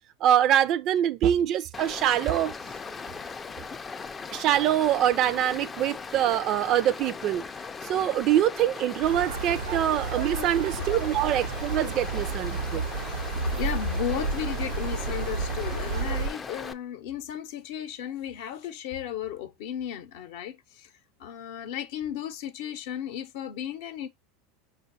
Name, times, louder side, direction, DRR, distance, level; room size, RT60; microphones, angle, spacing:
voice 1, 0.2-2.5 4.3-7.4 7.8-12.8, right 11 dB, 50° right, 0.3 m, -24 dB
Stream, 1.7-16.7, left 5 dB, 20° left, 0.3 m, -39 dB
sound 1, 9.0-16.3, right 4 dB, 90° right, 0.7 m, -31 dB
voice 2, 10.2-11.0 13.1-20.9 21.2-24.1, left 10 dB, 70° left, 0.6 m, -35 dB
5.1 x 2.3 x 3.9 m
hypercardioid pair, 95°, 0 cm